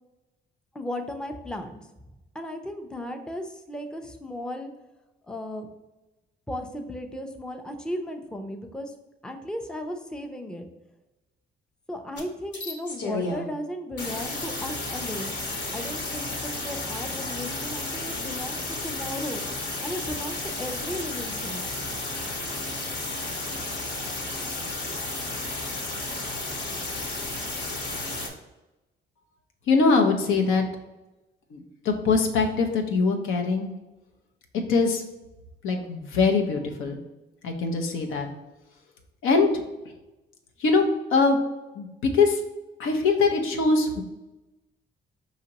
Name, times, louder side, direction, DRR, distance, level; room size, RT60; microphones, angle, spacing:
voice 1, 0.7-1.8 2.3-4.7 5.3-5.7 6.5-8.9 9.2-10.7 11.9-15.3 15.7-19.4 19.8-21.7, left 1 dB, 5° left, 5 dB, 0.5 m, -35 dB
sound 1, 12.2-12.3 12.5-13.5 14.0-28.3, left 2 dB, 65° left, 1.1 m, -32 dB
voice 2, 29.7-30.6 31.5-33.7 34.7-35.0 35.6-37.0 37.4-38.3 39.2-39.5 40.6-40.8 41.1-41.4 41.7-42.4 42.8-44.0, left 4 dB, 85° left, 4 dB, 0.7 m, -22 dB
4.9 x 2.9 x 2.8 m, 1.0 s
cardioid pair, 90°, 20 cm